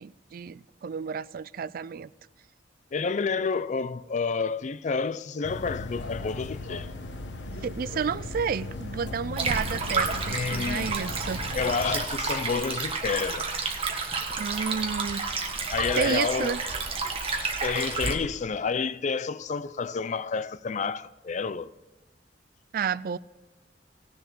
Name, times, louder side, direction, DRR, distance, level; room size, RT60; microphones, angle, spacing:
voice 1, 0.0-2.1 7.5-11.4 14.4-15.2 16.0-16.6 22.7-23.2, right 6 dB, 50° right, 0.3 m, -31 dB
voice 2, 2.9-6.9 10.3-11.0 11.5-13.5 15.7-16.6 17.6-21.7, left 5 dB, 40° left, 0.4 m, -29 dB
sound 1, 5.4-12.0, left 2 dB, 75° left, 1.1 m, -37 dB
Stream, 9.4-18.1, right 4 dB, 30° right, 1.5 m, -30 dB
17.5 x 6.8 x 6.0 m
head